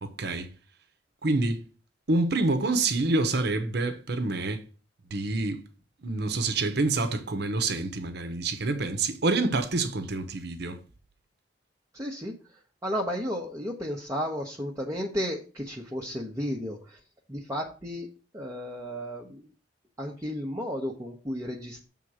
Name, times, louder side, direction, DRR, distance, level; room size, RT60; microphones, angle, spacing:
voice 1, 0.0-0.5 1.2-1.6 2.1-4.6 5.1-5.6 6.0-10.8, right 2 dB, 60° right, 1.0 m, -27 dB
voice 2, 11.9-12.4 12.8-17.0 17.3-18.1 18.3-19.5 20.0-21.9, equal, 20° right, 0.9 m, -33 dB
7.3 x 3.8 x 6.2 m
head